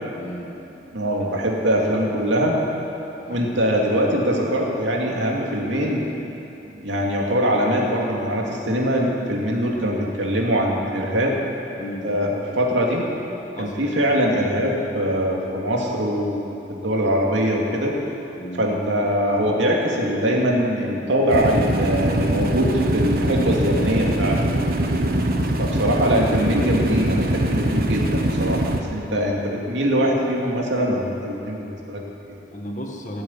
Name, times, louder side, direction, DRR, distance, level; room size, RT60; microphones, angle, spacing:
voice 1, 0.2-0.6 3.1-3.5 11.8-12.2 13.5-13.7 14.4-14.6 18.4-18.7 25.3-25.5 32.5-33.2, equal, 45° left, 0 dB, 1.8 m, -35 dB
voice 2, 0.9-2.6 3.3-6.0 6.6-11.4 11.8-13.0 13.6-17.9 18.5-24.6 25.6-32.4, equal, 90° right, -1 dB, 2.5 m, -22 dB
sound 1, 21.3-28.8, right 1 dB, 55° right, 1.2 m, -22 dB
17.0 x 8.1 x 8.9 m, 3.0 s
head